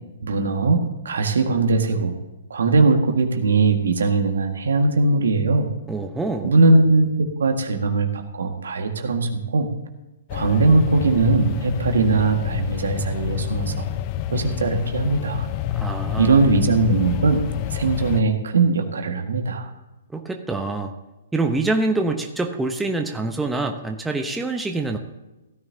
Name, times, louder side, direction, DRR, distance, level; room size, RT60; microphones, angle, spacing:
voice 1, 0.2-2.1 2.5-5.7 6.4-7.1 7.4-9.7 10.3-13.8 14.3-15.5 16.2-17.4 17.7-19.7, right 3 dB, 70° right, 4 dB, 1.8 m, -20 dB
voice 2, 5.9-6.5 15.7-16.4 20.1-20.9 21.3-25.0, right 2 dB, 5° right, 4 dB, 0.9 m, -25 dB
sound 1, 10.3-18.2, left 11 dB, 35° left, 0.5 m, -28 dB
16.0 x 13.5 x 2.9 m, 1.0 s
figure-of-eight pair, 120°, 0 cm